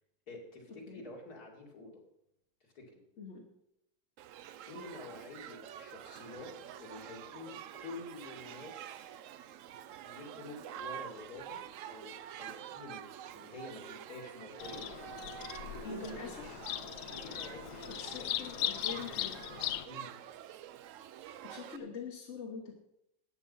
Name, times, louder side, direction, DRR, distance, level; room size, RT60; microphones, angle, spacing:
voice 1, 0.3-2.0 2.6-3.0 4.7-9.2 10.0-14.9 15.3-16.6 17.0-18.3 18.9-19.3 19.8-20.1, left 2 dB, 70° left, -1 dB, 3.0 m, -49 dB
Shout / Human group actions, 4.2-21.8, right 10 dB, 65° right, 0.8 m, -48 dB
Bird vocalization bird call bird song, 14.6-19.9, left 12 dB, 90° left, 1.2 m, -39 dB
voice 2, 15.8-16.6 17.9-19.5 21.4-22.8, left 4 dB, 45° left, 0 dB, 1.5 m, -44 dB
13.5 x 9.1 x 5.5 m, 0.80 s
omnidirectional pair, 1.7 m